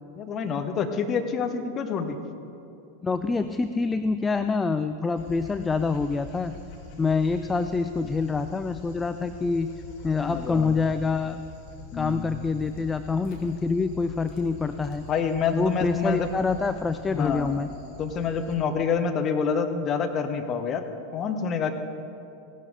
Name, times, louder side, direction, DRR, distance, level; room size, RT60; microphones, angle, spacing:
voice 1, 0.2-2.2 6.9-7.0 10.2-10.7 11.9-12.4 15.1-16.3 17.1-17.6 18.0-20.8 21.1-21.7, left 6 dB, 30° left, 7 dB, 1.0 m, -27 dB
voice 2, 3.0-6.6 7.0-9.7 10.0-11.4 11.9-15.0 15.5-17.7, left 4 dB, 15° left, 10 dB, 0.4 m, -26 dB
Dog, 5.2-18.5, left 6 dB, 45° left, 2.0 m, -45 dB
16.5 x 11.5 x 4.0 m, 2.7 s
figure-of-eight pair, 90°, 0 cm